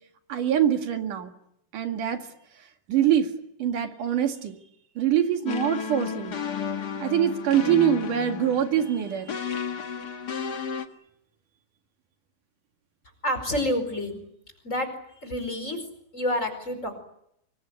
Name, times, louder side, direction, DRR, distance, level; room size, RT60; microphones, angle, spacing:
voice 1, 0.3-1.3 1.7-2.2 2.9-3.3 3.6-4.6 5.0-6.4 7.0-9.6, right 10 dB, 75° right, 5 dB, 3.5 m, -24 dB
sound 1, 5.5-10.9, left 7 dB, 40° left, 1.6 m, -32 dB
voice 2, 13.2-14.2 14.6-14.9 15.2-15.8 16.1-17.0, left 1 dB, 20° left, 8 dB, 5.0 m, -28 dB
26.0 x 23.5 x 9.6 m, 0.77 s
omnidirectional pair, 3.7 m